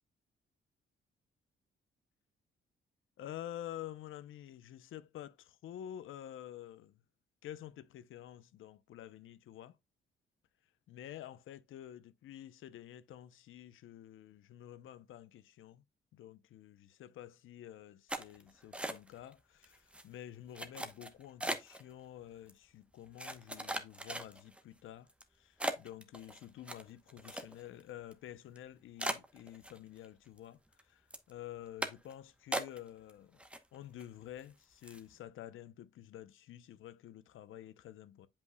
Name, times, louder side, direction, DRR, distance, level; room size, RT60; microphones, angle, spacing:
voice 1, 3.2-7.0 7.4-9.8 10.9-15.8 16.1-25.1 25.3-30.6 30.9-33.4 33.7-38.3, left 11 dB, 85° left, 0.7 m, -49 dB
sound 1, 18.1-19.3 19.6-20.0 20.5-21.8 22.5-22.6 23.2-24.6 25.1-25.2 25.6-27.8 28.1-28.2 28.6-28.7 29.0-30.1 30.4-30.8 31.1-31.3 31.8-32.1 32.5-33.1 33.4-34.0 34.4-34.5 34.8-35.1, right 1 dB, 5° right, 0.9 m, -39 dB
8.2 x 5.3 x 2.2 m
cardioid pair, 140°, 20 cm